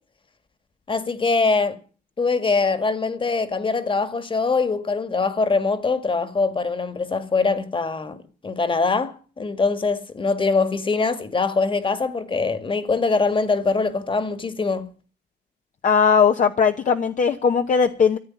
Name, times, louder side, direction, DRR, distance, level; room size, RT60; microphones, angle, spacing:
voice 1, 0.9-1.8 2.2-8.2 8.4-14.9, left 4 dB, 30° left, 1.8 m, -23 dB
voice 2, 15.8-18.2, left 6 dB, 45° left, 1.0 m, -18 dB
14.5 x 8.9 x 9.5 m
cardioid pair, 110°, 18 cm